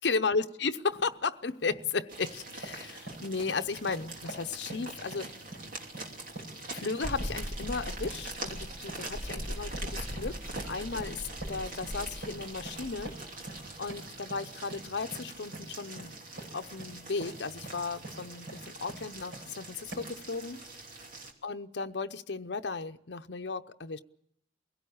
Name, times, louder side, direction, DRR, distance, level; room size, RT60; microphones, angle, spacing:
voice 1, 0.0-5.3 6.7-13.1 13.8-16.2 16.5-20.6 21.4-24.0, left 4 dB, 70° left, 0.8 m, -35 dB
sound 1, 0.9-1.1 1.5-1.9 2.3-19.5 19.9-20.3, right 2 dB, 80° right, 7.2 m, -46 dB
sound 2, 2.1-21.3, right 2 dB, 50° right, 2.9 m, -44 dB
sound 3, 7.0-13.9, equal, 15° right, 1.1 m, -41 dB
23.5 x 17.0 x 8.7 m
head